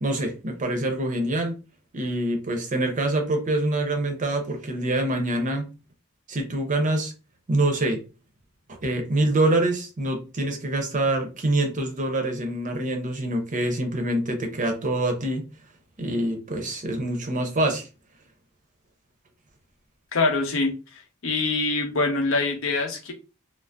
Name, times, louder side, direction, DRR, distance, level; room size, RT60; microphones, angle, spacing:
voice 1, 0.0-1.6 1.9-5.7 6.3-7.1 7.5-8.0 8.8-15.4 16.0-17.8, right 1 dB, 35° right, 0.6 m, -25 dB
voice 2, 20.1-20.7 21.2-23.1, left 3 dB, 65° left, 0.7 m, -24 dB
2.5 x 2.0 x 3.3 m
head